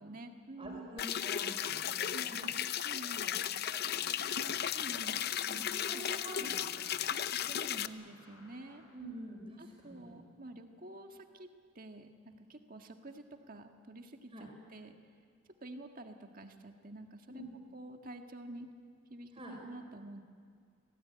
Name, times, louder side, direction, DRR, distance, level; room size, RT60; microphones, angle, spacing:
voice 1, 0.0-0.9 2.1-2.4 2.8-3.3 4.7-5.2 5.8-6.5 7.1-8.8 9.6-15.0 15.6-17.4 17.7-18.7 19.1-20.2, right 1 dB, 40° right, 5 dB, 1.7 m, -49 dB
voice 2, 0.6-2.5 3.1-3.3 3.6-4.5 5.5-7.0 8.9-10.2 14.3-14.5 17.3-17.5 19.3-19.5, right 1 dB, 25° right, -1 dB, 4.9 m, -47 dB
sound 1, 1.0-7.9, left 9 dB, 45° left, 0.6 m, -35 dB
sound 2, 4.3-9.1, left 1 dB, 75° left, 5.8 m, -58 dB
25.5 x 18.0 x 9.6 m, 2.1 s
head